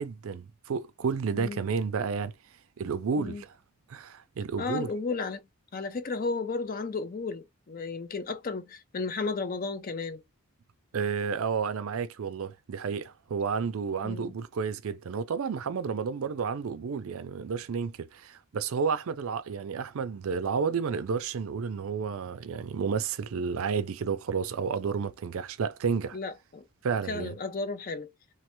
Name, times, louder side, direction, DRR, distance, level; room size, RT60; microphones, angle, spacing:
voice 1, 0.0-2.3 2.8-3.6 3.9-4.9 10.9-26.2 26.8-27.3, right 5 dB, 70° right, 0.4 m, -31 dB
voice 2, 4.6-5.4 5.7-10.2 14.0-14.3 26.1-26.6 27.1-28.1, left 4 dB, 40° left, 0.4 m, -33 dB
3.2 x 2.0 x 3.0 m
head